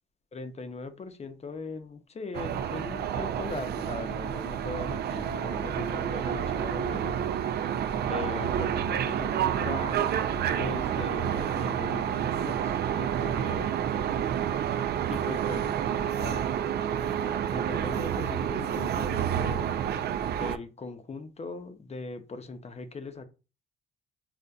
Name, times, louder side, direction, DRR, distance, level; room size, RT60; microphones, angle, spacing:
voice 1, 0.3-7.2 8.1-10.2 10.6-13.7 15.1-16.5 17.5-19.7 20.4-23.3, left 3 dB, 35° left, 0.6 m, -40 dB
sound 1, 2.3-20.6, right 9 dB, 55° right, 0.4 m, -29 dB
5.2 x 2.5 x 2.2 m
cardioid pair, 90°, 20 cm